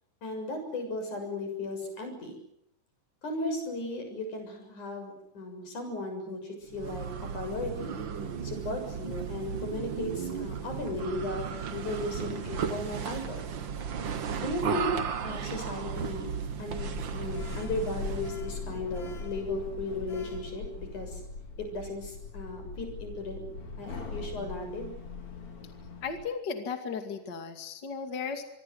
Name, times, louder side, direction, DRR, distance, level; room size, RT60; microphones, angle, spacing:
voice 1, 0.2-2.3 3.2-7.1 7.3-8.0 8.4-13.5 14.4-14.9 15.2-16.3 16.6-16.9 17.1-21.2 21.7-23.4 23.8-25.0, left 2 dB, 90° left, 5 dB, 8.5 m, -36 dB
sound 1, 6.7-18.4, right 7 dB, 50° right, 1.7 m, -35 dB
Sliding door, 16.7-26.2, left 4 dB, 65° left, 4.8 m, -40 dB
voice 2, 26.0-28.4, left 5 dB, 35° left, 6 dB, 2.9 m, -35 dB
25.5 x 23.0 x 8.0 m, 0.76 s
omnidirectional pair, 3.4 m